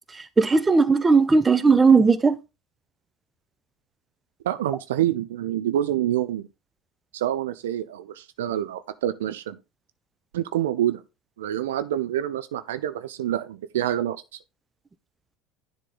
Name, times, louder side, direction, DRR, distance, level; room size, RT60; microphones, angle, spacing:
voice 1, 0.4-2.4, right 4 dB, 20° right, 0.8 m, -17 dB
voice 2, 4.4-6.5 7.1-9.6 10.3-11.0 11.4-14.2, right 12 dB, 70° right, 0.4 m, -27 dB
10.0 x 3.7 x 3.9 m
figure-of-eight pair, 70°, 0 cm